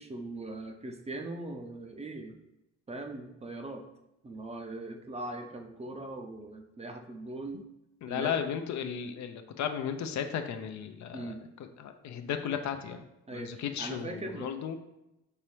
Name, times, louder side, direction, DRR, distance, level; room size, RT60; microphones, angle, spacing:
voice 1, 0.0-2.4 2.9-3.8 4.2-7.6 8.1-8.4 11.1-11.4 13.3-14.5, right 2 dB, 20° right, 4 dB, 0.6 m, -40 dB
voice 2, 8.0-11.3 11.8-13.0 13.3-14.8, left 8 dB, 65° left, 7 dB, 0.5 m, -35 dB
5.6 x 3.0 x 3.2 m, 0.89 s
cardioid pair, 90°, 30 cm